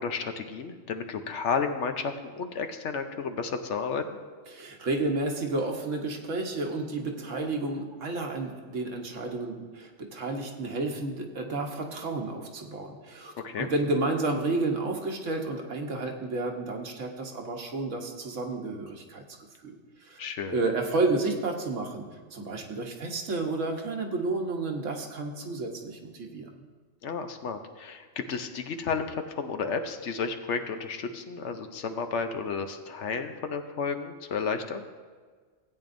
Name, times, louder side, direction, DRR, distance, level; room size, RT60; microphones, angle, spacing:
voice 1, 0.0-4.1 13.4-13.7 20.2-20.5 27.0-34.9, left 5 dB, 65° left, 7 dB, 1.0 m, -32 dB
voice 2, 4.5-19.2 19.6-19.7 20.0-22.0 22.3-26.5, right 2 dB, 70° right, 2 dB, 1.4 m, -31 dB
17.0 x 8.8 x 2.6 m, 1.5 s
omnidirectional pair, 1.3 m